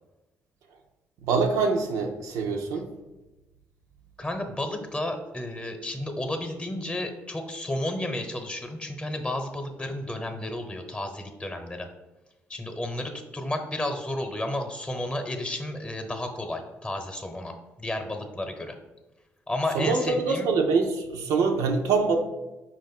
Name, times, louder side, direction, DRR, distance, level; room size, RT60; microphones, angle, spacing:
voice 1, 1.2-2.9 19.7-22.2, right 4 dB, 80° right, 3 dB, 0.5 m, -24 dB
voice 2, 4.2-11.9 12.5-18.8 19.5-20.5, left 1 dB, 20° left, 6 dB, 0.8 m, -32 dB
5.2 x 2.5 x 4.1 m, 1.1 s
supercardioid pair, 55°, 6 cm